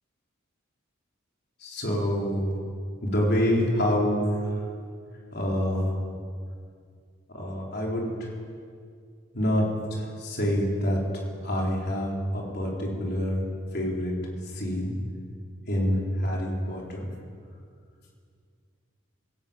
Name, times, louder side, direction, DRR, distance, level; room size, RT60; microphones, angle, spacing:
voice 1, 1.6-2.6 3.0-4.2 5.3-5.9 7.3-8.3 9.3-9.6 9.9-11.0 11.4-13.4 13.7-14.1 14.5-14.9 15.7-17.1, equal, 50° left, -2 dB, 4.5 m, -26 dB
20.0 x 17.0 x 9.0 m, 2.2 s
head